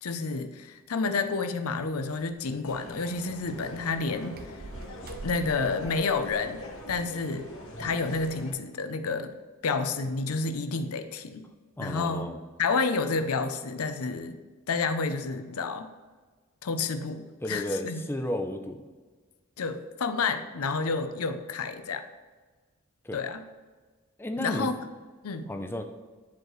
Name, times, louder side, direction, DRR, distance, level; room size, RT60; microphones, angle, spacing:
voice 1, 0.0-4.6 5.2-7.5 7.8-9.3 9.6-11.5 11.8-12.3 12.6-14.4 14.7-15.9 16.6-18.0 19.6-22.1 23.1-23.4 24.4-24.8 25.2-25.5, left 4 dB, 85° left, 8 dB, 0.6 m, -30 dB
sound 1, 1.8-7.0, right 2 dB, 45° right, 0.5 m, -46 dB
sound 2, 2.6-8.5, left 1 dB, 70° left, 1.5 m, -43 dB
voice 2, 11.8-12.4 17.4-18.8 23.0-23.2 24.2-24.7 25.5-25.8, left 1 dB, 10° left, 5 dB, 0.5 m, -33 dB
10.5 x 4.7 x 3.1 m, 1.4 s
head